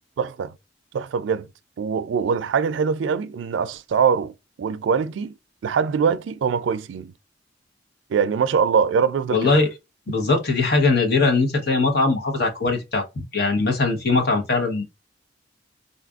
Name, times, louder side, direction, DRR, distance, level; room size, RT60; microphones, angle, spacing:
voice 1, 0.2-0.5 0.9-1.5 1.8-5.3 5.6-7.1 8.1-9.6, right 6 dB, 80° right, 0.3 m, -23 dB
voice 2, 9.3-9.7 10.1-13.0 13.3-14.8, left 3 dB, 60° left, 1.0 m, -20 dB
3.9 x 2.4 x 2.3 m
head